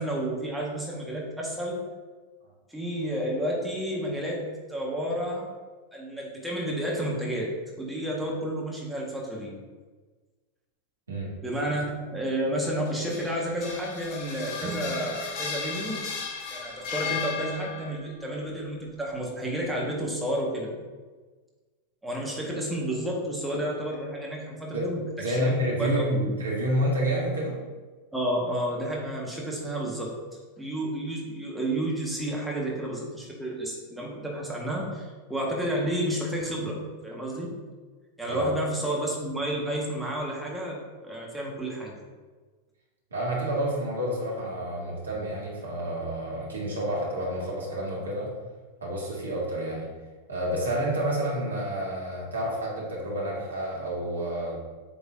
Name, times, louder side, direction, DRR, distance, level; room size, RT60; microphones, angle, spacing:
voice 1, 0.0-1.8 2.7-5.5 5.9-9.5 11.4-11.8 12.1-16.0 16.5-20.7 22.0-26.3 28.1-30.1 30.6-36.8 37.0-37.5 38.2-40.8 41.0-41.9, right 1 dB, 5° right, -3 dB, 1.4 m, -31 dB
sound 1, 12.9-18.0, left 5 dB, 45° left, 1.2 m, -35 dB
sound 2, 14.6-16.8, right 3 dB, 35° right, 0.7 m, -42 dB
voice 2, 25.2-27.6 38.3-38.5 43.1-48.3 48.8-49.9 50.3-54.6, right 1 dB, 75° right, -4 dB, 1.9 m, -29 dB
8.0 x 5.4 x 2.6 m, 1.4 s
figure-of-eight pair, 90°, 0 cm